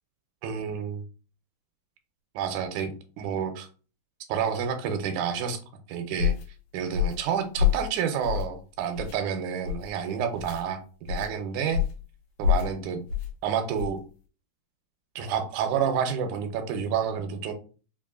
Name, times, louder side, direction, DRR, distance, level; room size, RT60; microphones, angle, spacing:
voice 1, 0.4-1.0 2.4-3.7 4.3-5.6 5.9-6.3 6.7-10.8 11.1-11.8 12.4-13.0 13.4-14.0 15.2-17.5, right 7 dB, 85° right, 2.0 m, -29 dB
sound 1, 6.2-6.5 6.9-7.2 7.6-7.9 8.2-8.6 8.9-9.2 9.6-9.9 10.4-10.6 11.1-11.3 11.7-12.0 12.4-12.7 13.1-13.3 13.7-14.0, left 9 dB, 75° left, 2.1 m, -26 dB
5.3 x 2.4 x 2.4 m
omnidirectional pair, 3.5 m